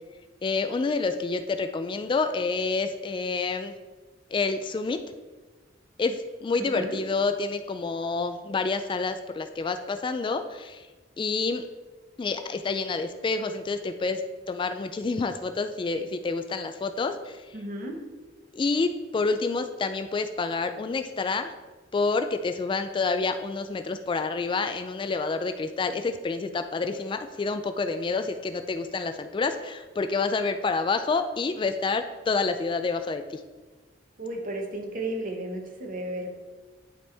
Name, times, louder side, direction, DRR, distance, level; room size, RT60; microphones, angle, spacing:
voice 1, 0.4-3.7 4.3-5.0 6.0-10.9 11.2-11.6 12.2-14.2 14.5-17.4 18.5-21.5 21.9-33.4, left 4 dB, 25° left, 8 dB, 0.3 m, -28 dB
voice 2, 6.6-7.0 17.5-18.0 34.2-36.3, right 1 dB, 50° right, 2 dB, 1.1 m, -33 dB
11.0 x 4.3 x 3.4 m, 1.3 s
head